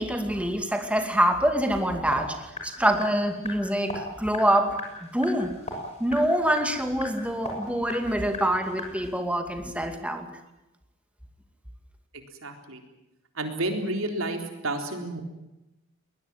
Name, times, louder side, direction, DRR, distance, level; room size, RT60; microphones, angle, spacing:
voice 1, 0.0-5.5 6.0-10.3, right 1 dB, 5° right, 6 dB, 2.4 m, -25 dB
sound 1, 2.1-9.1, left 2 dB, 30° left, 6.7 m, -39 dB
voice 2, 12.1-12.8 13.3-15.2, right 2 dB, 70° right, 5 dB, 3.9 m, -31 dB
21.5 x 20.5 x 9.2 m, 0.95 s
head